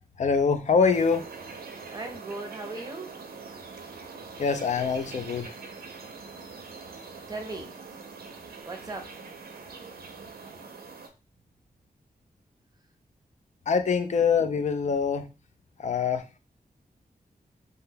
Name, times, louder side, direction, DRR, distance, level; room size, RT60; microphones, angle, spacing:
voice 1, 0.2-1.3 4.4-5.5 13.7-15.3 15.8-16.4, left 5 dB, 50° left, 0.4 m, -24 dB
sound 1, 0.9-11.1, right 4 dB, 80° right, 0.6 m, -43 dB
voice 2, 1.9-3.1 7.3-7.7 8.6-9.2, right 2 dB, 25° right, 0.6 m, -37 dB
2.8 x 2.2 x 3.3 m
wide cardioid pair, 150°, 16 cm